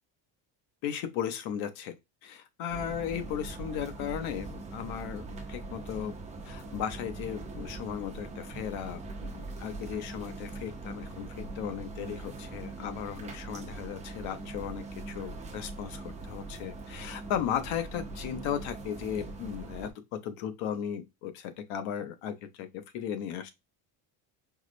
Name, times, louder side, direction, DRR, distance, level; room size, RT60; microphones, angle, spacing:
voice 1, 0.8-1.9 2.2-5.2 5.5-6.1 6.4-22.7 22.9-23.5, left 9 dB, 75° left, 0.7 m, -36 dB
sound 1, 2.7-19.9, right 3 dB, 15° right, 0.3 m, -41 dB
4.8 x 2.0 x 2.5 m
cardioid pair, 165°, 47 cm